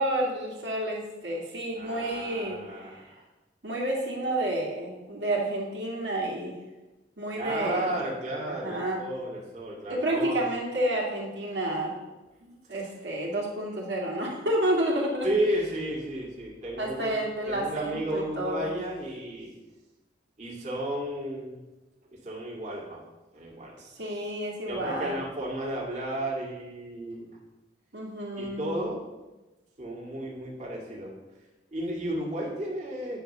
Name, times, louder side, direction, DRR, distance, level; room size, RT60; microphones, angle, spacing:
voice 1, 0.0-3.1 3.6-6.6 7.2-8.0 8.5-9.0 9.9-12.0 12.4-15.3 16.8-18.7 23.8-25.2 27.9-28.8, right 1 dB, 85° right, -3 dB, 2.2 m, -30 dB
voice 2, 1.8-3.2 7.4-10.4 12.7-12.9 15.2-17.2 17.5-19.5 20.4-21.6 22.2-23.0 23.3-23.8 24.7-27.3 28.4-29.0 29.8-31.1 31.7-33.2, right 1 dB, 40° right, -4 dB, 1.9 m, -33 dB
9.1 x 4.1 x 6.7 m, 1.1 s
head